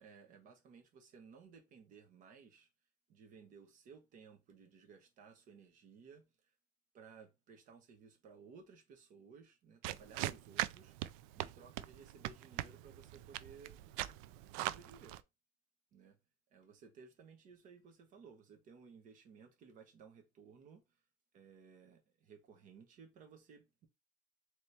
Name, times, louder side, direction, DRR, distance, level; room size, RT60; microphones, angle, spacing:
voice 1, 0.0-2.7 3.1-6.5 6.9-10.9 11.3-13.8 14.5-15.1 15.9-16.2 16.5-21.0 21.3-23.9, right 5 dB, 50° right, 1.1 m, -58 dB
sound 1, 9.8-15.2, right 15 dB, 80° right, 0.4 m, -41 dB
4.1 x 3.1 x 3.3 m
supercardioid pair, 125°, 17 cm